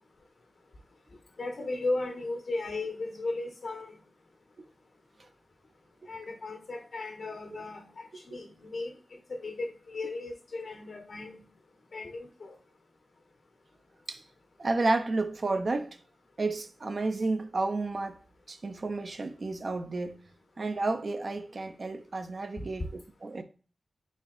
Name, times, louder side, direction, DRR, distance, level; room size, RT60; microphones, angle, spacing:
voice 1, 1.4-4.0 6.1-8.9 9.3-11.4 11.9-12.5, left 2 dB, 70° left, 1.3 m, -36 dB
voice 2, 14.6-16.0 16.4-18.2 18.5-20.2 20.6-23.4, right 3 dB, 50° right, 0.4 m, -31 dB
4.2 x 3.4 x 2.4 m
wide cardioid pair, 105°, 0 cm